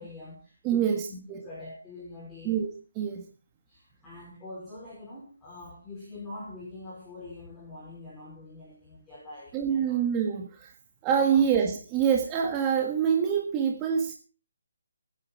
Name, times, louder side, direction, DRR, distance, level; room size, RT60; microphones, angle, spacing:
voice 1, 0.0-2.6 3.7-10.0 11.3-11.4, left 2 dB, 5° left, -8 dB, 5.0 m, -44 dB
voice 2, 0.6-1.4 2.4-2.7 2.9-3.2 9.5-10.7 11.0-14.1, right 8 dB, 15° right, 2 dB, 1.6 m, -25 dB
21.0 x 10.0 x 4.5 m, 0.37 s
hypercardioid pair, 165°, 0 cm